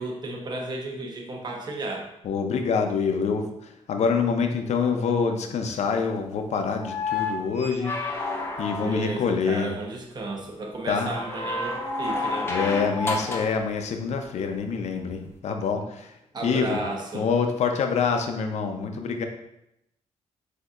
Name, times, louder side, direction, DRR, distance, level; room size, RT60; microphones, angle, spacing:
voice 1, 0.0-2.1 8.8-12.5 16.3-17.3, right 2 dB, 35° right, 1 dB, 0.9 m, -33 dB
voice 2, 2.2-7.9 8.6-9.7 10.9-11.1 12.5-16.1 16.4-16.8 17.1-19.2, left 5 dB, 70° left, 5 dB, 0.6 m, -26 dB
sound 1, 6.8-9.3 11.1-13.6 15.2-15.3, left 3 dB, 20° left, 0.7 m, -30 dB
7.8 x 2.8 x 2.4 m, 0.82 s
wide cardioid pair, 135°, 12 cm